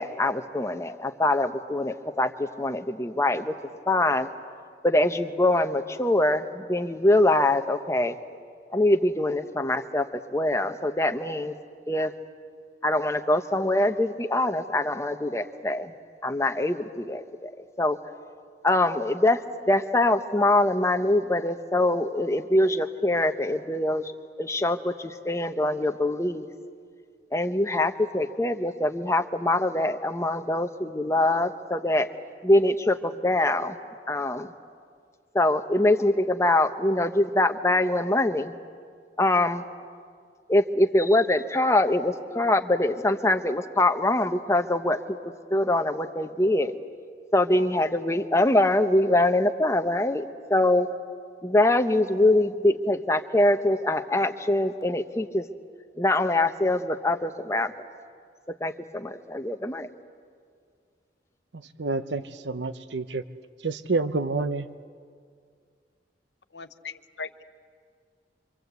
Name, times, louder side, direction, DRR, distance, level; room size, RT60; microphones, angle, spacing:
voice 1, 0.0-3.5 3.9-4.3 4.8-8.2 8.7-11.5 11.9-12.1 12.8-15.9 16.2-18.0 18.6-19.4 19.7-24.1 24.4-26.5 27.3-32.1 32.4-33.8 34.1-34.5 35.3-38.5 39.2-39.6 40.5-45.2 45.5-46.8 47.3-50.2 50.5-50.9 51.4-55.4 56.0-57.7 58.5-59.9, left 1 dB, 15° left, 7 dB, 1.0 m, -23 dB
voice 2, 61.5-63.2 63.6-64.7, right 3 dB, 85° right, 12 dB, 0.9 m, -28 dB
voice 3, 66.5-67.4, left 4 dB, 75° left, 11 dB, 1.0 m, -39 dB
26.5 x 25.5 x 8.2 m, 2.2 s
head